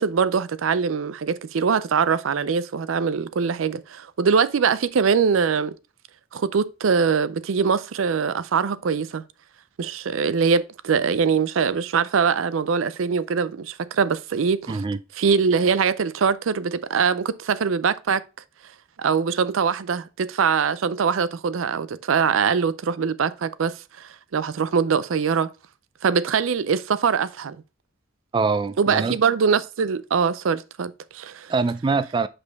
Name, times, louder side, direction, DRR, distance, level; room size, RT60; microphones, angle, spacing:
voice 1, 0.0-5.8 6.3-9.2 9.8-14.8 15.2-18.2 19.0-25.5 26.0-27.6 28.8-31.5, right 6 dB, 90° right, 0.5 m, -23 dB
voice 2, 14.7-15.0 28.3-29.2 31.5-32.3, right 4 dB, 25° right, 0.3 m, -23 dB
6.3 x 5.2 x 3.4 m
head